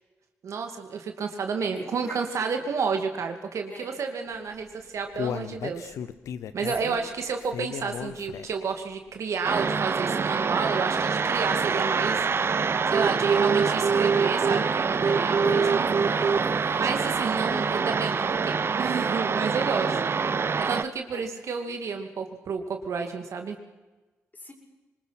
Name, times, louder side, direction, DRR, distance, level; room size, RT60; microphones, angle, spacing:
voice 1, 0.4-5.9 6.5-12.2 12.6-15.9 16.7-19.9 20.6-23.6, right 5 dB, 70° right, 5 dB, 2.5 m, -31 dB
voice 2, 1.6-2.7 3.7-4.0 6.8-7.1 15.4-16.9 17.5-17.7 19.6-19.9 21.1-21.3 24.3-24.5, left 2 dB, 35° left, 1 dB, 6.8 m, -41 dB
Human voice, 4.5-8.7 9.1-9.2 9.7-9.8, left 8 dB, 85° left, 0.9 m, -35 dB
sound 1, 9.4-20.8, right 5 dB, 50° right, 0.8 m, -25 dB
24.5 x 20.5 x 6.1 m, 1.2 s
supercardioid pair, 45°, 5 cm